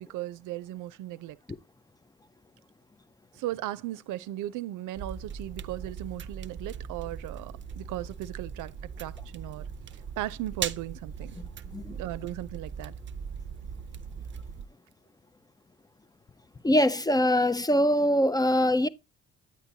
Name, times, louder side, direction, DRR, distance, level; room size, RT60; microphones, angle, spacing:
voice 1, 0.0-1.4 3.3-9.7 10.2-11.4 11.9-12.9, right 14 dB, 85° right, 0.6 m, -37 dB
sound 1, 5.0-14.7, right 7 dB, 40° right, 0.6 m, -39 dB
voice 2, 11.4-12.0 16.6-18.9, left 1 dB, 15° left, 0.4 m, -23 dB
9.6 x 8.1 x 2.7 m
cardioid pair, 90°, 30 cm